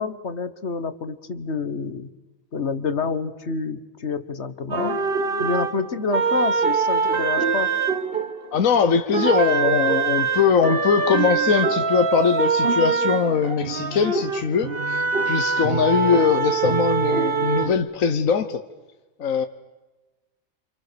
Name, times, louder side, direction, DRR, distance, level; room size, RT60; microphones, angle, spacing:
voice 1, 0.0-2.1 2.5-5.0 5.4-7.7, left 4 dB, 55° left, 11 dB, 1.7 m, -28 dB
sound 1, 4.7-8.8 9.1-17.7, right 5 dB, 45° right, 1.4 m, -23 dB
voice 2, 8.5-18.6 19.2-19.5, left 6 dB, 70° left, 7 dB, 1.5 m, -21 dB
28.5 x 27.5 x 7.0 m, 1.1 s
omnidirectional pair, 1.5 m